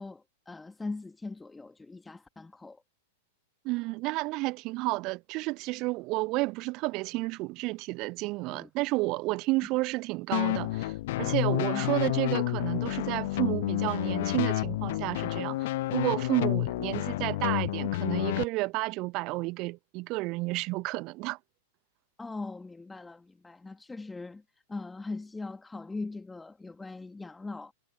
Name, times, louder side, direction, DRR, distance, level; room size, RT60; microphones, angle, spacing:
voice 1, 0.0-2.8 8.5-8.7 11.7-12.0 22.2-24.4 24.7-27.7, left 3 dB, 10° left, 1.7 m, -40 dB
voice 2, 3.6-21.4, right 23 dB, 40° right, 0.9 m, -31 dB
sound 1, 10.3-18.4, left 17 dB, 50° left, 0.7 m, -29 dB
figure-of-eight pair, 95°, 0 cm